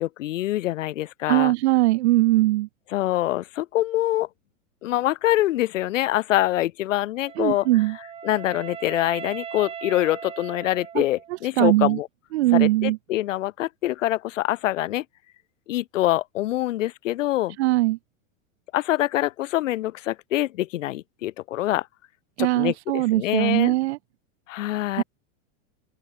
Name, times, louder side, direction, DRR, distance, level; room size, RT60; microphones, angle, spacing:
voice 1, 0.0-1.5 2.9-4.3 4.8-7.7 8.2-12.1 12.5-15.0 15.7-17.6 18.7-21.9 22.4-23.8 24.5-25.0, left 15 dB, 70° left, 1.9 m, -25 dB
voice 2, 1.3-2.7 7.4-8.0 10.9-11.0 11.6-12.0 12.3-13.0 17.6-18.0 22.4-24.0 25.0-25.1, right 18 dB, 55° right, 0.7 m, -20 dB
Wind instrument woodwind instrument, 7.2-11.4, right 8 dB, 15° right, 2.9 m, -39 dB
open air
supercardioid pair, 175°, 39 cm